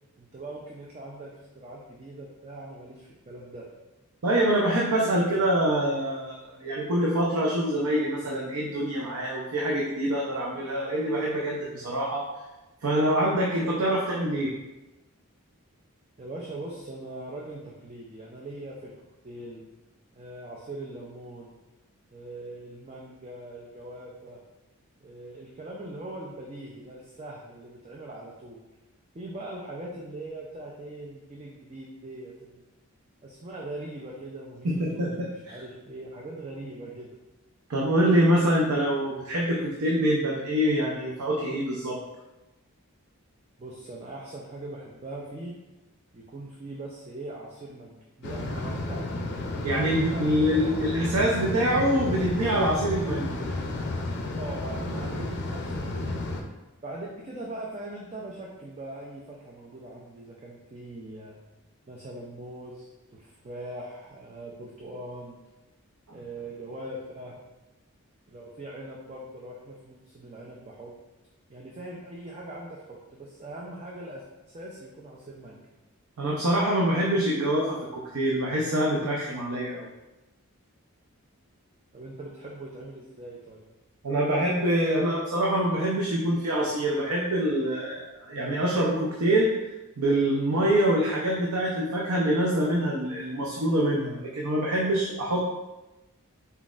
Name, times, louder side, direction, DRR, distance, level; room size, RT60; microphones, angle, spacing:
voice 1, 0.2-3.7 16.2-18.9 19.2-19.6 20.1-21.5 22.1-24.4 25.0-28.6 29.1-32.6 33.2-37.2 43.6-45.5 46.1-49.2 50.1-50.8 54.3-56.1 56.8-61.4 61.9-65.4 66.1-67.4 68.3-70.9 71.5-74.2 74.5-75.6 81.9-83.6, right 1 dB, 30° right, -3 dB, 0.4 m, -41 dB
voice 2, 4.2-12.3 12.8-14.5 34.6-35.6 37.7-42.0 49.6-53.4 76.2-79.9 84.0-89.5 90.0-95.5, right 1 dB, 80° right, -3 dB, 0.6 m, -25 dB
sound 1, 48.2-56.4, left 2 dB, 50° left, 0.5 m, -32 dB
4.1 x 4.0 x 2.4 m, 1.0 s
head